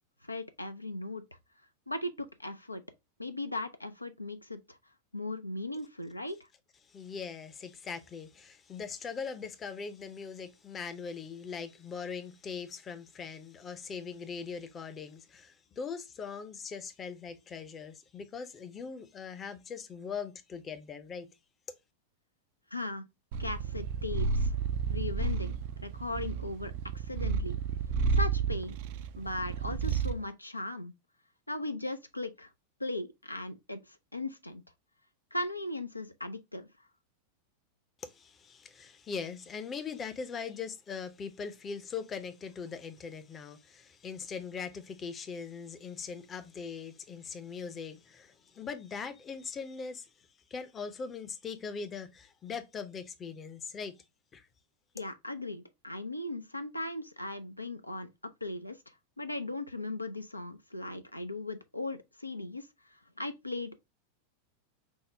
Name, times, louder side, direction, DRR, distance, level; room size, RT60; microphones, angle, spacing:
voice 1, 0.2-1.2 1.9-2.8 3.2-4.8 5.1-6.4 22.7-23.0 23.4-24.5 24.9-25.5 25.8-27.6 28.1-28.8 29.2-30.9 31.5-32.5 32.8-34.6 35.3-36.7 54.9-58.1 58.4-63.8, left 2 dB, 85° left, 0.3 m, -38 dB
voice 2, 6.8-21.3 38.0-54.0 54.3-54.5, left 5 dB, 25° left, 0.5 m, -41 dB
Purr, 23.3-30.2, right 5 dB, 50° right, 0.3 m, -31 dB
5.3 x 2.1 x 3.2 m
figure-of-eight pair, 90°, 0 cm